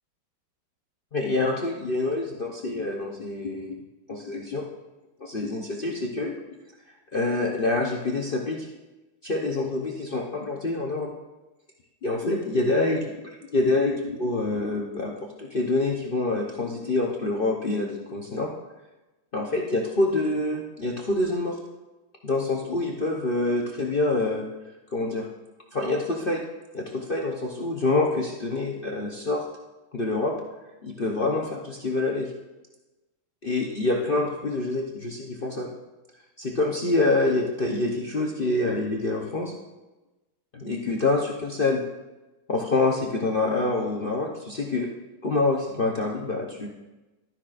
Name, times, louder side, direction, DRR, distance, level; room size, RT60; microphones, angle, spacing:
voice 1, 1.1-3.7 4.1-4.6 5.2-6.3 7.1-8.7 9.2-11.1 12.0-13.1 13.5-15.1 15.4-18.5 19.3-21.6 22.2-24.5 24.9-25.3 25.7-26.4 26.7-29.5 29.9-30.4 30.8-32.3 33.4-35.7 36.4-39.5 40.5-41.8 42.5-44.9 45.2-46.7, left 2 dB, 50° left, -1 dB, 0.6 m, -26 dB
12.5 x 10.5 x 2.5 m, 1.1 s
omnidirectional pair, 2.1 m